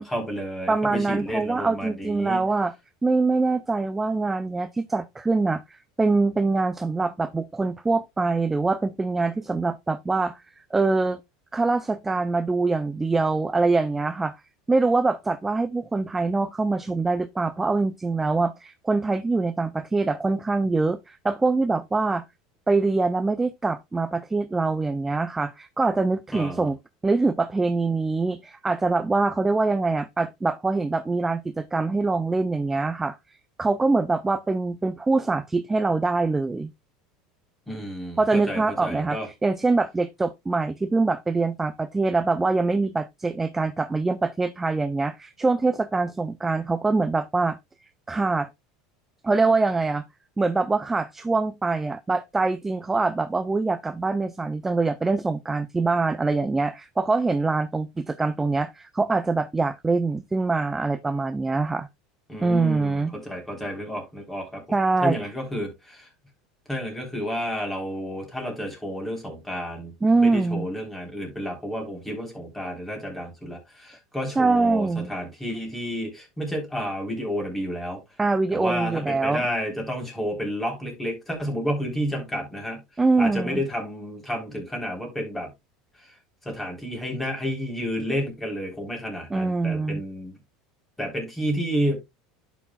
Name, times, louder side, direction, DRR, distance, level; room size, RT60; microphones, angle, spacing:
voice 1, 0.0-2.4 26.3-26.7 37.7-39.3 62.3-64.6 65.0-66.1 66.7-78.0 78.5-82.8 83.2-85.5 86.4-90.4 91.0-92.0, equal, 10° left, 3.5 m, -30 dB
voice 2, 0.7-2.7 3.0-10.4 10.7-11.2 11.5-14.4 14.7-22.2 22.7-33.2 33.6-36.7 38.2-47.6 48.1-48.5 49.2-50.0 50.4-61.9 62.4-63.1 64.7-65.2 70.0-70.7 74.4-75.1 78.2-79.4 83.0-83.6 89.3-90.0, right 3 dB, 10° right, 0.4 m, -24 dB
11.0 x 6.1 x 2.2 m
supercardioid pair, 125°, 2 cm